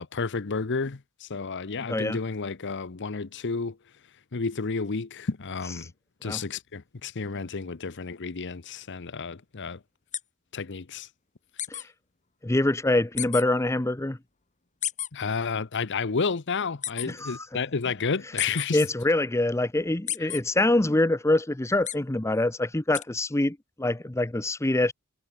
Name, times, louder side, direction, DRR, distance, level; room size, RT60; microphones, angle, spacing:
voice 1, 0.0-3.8 4.3-5.9 6.2-9.8 10.5-11.1 15.1-18.8, left 4 dB, 55° left, 0.8 m, -31 dB
voice 2, 1.9-2.2 6.2-6.4 11.7-11.9 12.4-14.2 17.1-17.5 18.7-24.9, left 2 dB, 15° left, 0.7 m, -25 dB
sound 1, 10.1-10.2 11.6-11.8 13.2-13.4 14.8-15.1 16.8-17.1 18.4-18.7 20.1-20.4 21.9-22.0 22.9-23.0, left 11 dB, 35° left, 1.7 m, -30 dB
head